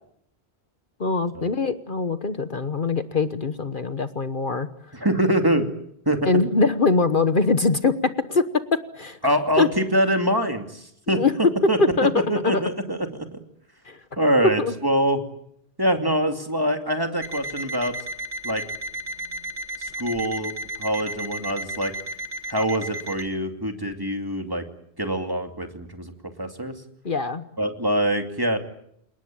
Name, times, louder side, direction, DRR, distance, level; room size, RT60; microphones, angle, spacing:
voice 1, 1.0-4.7 6.2-7.9 8.3-8.4 9.0-9.2 9.6-9.7 11.1-11.3 11.8-12.1 12.4-12.6 13.9-14.0 14.6-14.7 27.0-27.4, left 3 dB, 50° left, 10 dB, 1.3 m, -22 dB
voice 2, 4.9-5.7 6.1-6.3 9.2-11.2 11.7-11.8 12.1-13.3 14.2-15.2 15.8-17.9 18.4-18.6 19.8-20.5 20.8-21.9 22.5-24.6 25.0-26.1 26.4-26.8 27.6-28.6, equal, 20° right, 5 dB, 2.6 m, -24 dB
Alarm, 17.2-23.3, right 1 dB, 40° right, 2.0 m, -34 dB
29.0 x 18.5 x 8.7 m, 0.73 s
omnidirectional pair, 1.1 m